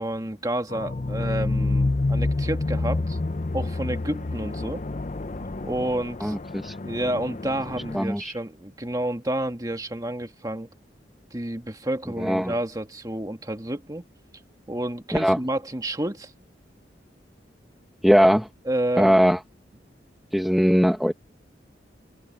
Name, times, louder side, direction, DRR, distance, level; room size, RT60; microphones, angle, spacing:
voice 1, 0.0-3.2 3.5-4.8 5.6-6.3 6.8-10.7 11.3-14.0 14.7-16.3 18.7-19.3, right 1 dB, 20° right, 1.9 m, -30 dB
sound 1, 0.7-8.0, left 2 dB, 40° left, 0.6 m, -28 dB
voice 2, 6.2-6.7 7.9-8.3 12.2-12.5 15.1-15.4 18.0-18.5 19.0-19.4 20.3-21.1, equal, ahead, 1.0 m, -20 dB
head